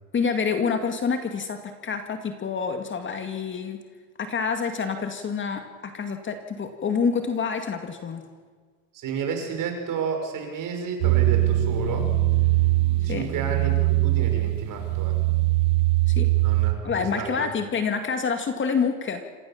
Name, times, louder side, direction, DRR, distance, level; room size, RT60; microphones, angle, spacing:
voice 1, 0.1-3.8 4.2-8.3 13.1-13.3 16.1-16.3 16.8-19.2, left 5 dB, 25° left, 7 dB, 2.2 m, -27 dB
voice 2, 8.9-12.1 13.0-15.2 16.4-17.5, right 5 dB, 45° right, 3 dB, 5.9 m, -31 dB
sound 1, 11.0-16.7, right 17 dB, 75° right, 3.1 m, -22 dB
27.0 x 15.0 x 7.4 m, 1.5 s
supercardioid pair, 125°, 43 cm